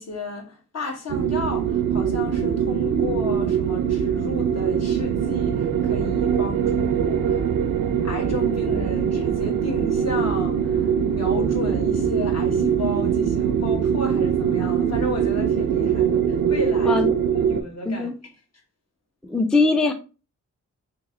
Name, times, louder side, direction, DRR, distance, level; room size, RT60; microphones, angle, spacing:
voice 1, 0.0-7.5 8.0-17.0 17.4-18.1, left 2 dB, 55° left, 1.3 m, -33 dB
sound 1, 1.1-17.6, right 8 dB, 80° right, 0.5 m, -22 dB
voice 2, 19.3-19.9, left 3 dB, ahead, 0.4 m, -21 dB
3.0 x 2.9 x 3.6 m
cardioid pair, 65°, 32 cm